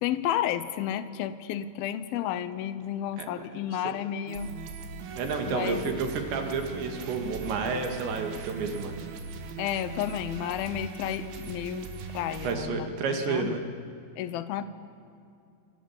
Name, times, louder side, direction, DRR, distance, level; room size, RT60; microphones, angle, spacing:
voice 1, 0.0-4.5 5.5-5.9 9.6-11.9 12.1-12.9 13.3-13.6 14.2-14.6, left 11 dB, 75° left, 13 dB, 2.3 m, -31 dB
sound 1, 4.3-12.6, right 4 dB, 90° right, 4.4 m, -40 dB
voice 2, 5.2-8.9 12.4-13.6, right 4 dB, 70° right, 4 dB, 4.4 m, -30 dB
29.0 x 24.0 x 7.4 m, 2.5 s
omnidirectional pair, 5.3 m